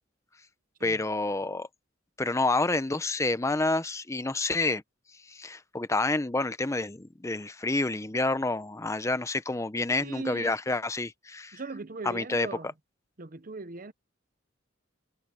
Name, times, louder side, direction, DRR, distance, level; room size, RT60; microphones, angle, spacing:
voice 1, 0.8-1.7 2.2-4.8 5.3-11.6 12.1-12.5, left 2 dB, 15° left, 0.7 m, -28 dB
voice 2, 10.0-10.6 11.5-12.7 13.2-13.9, right 3 dB, 45° right, 0.9 m, -39 dB
head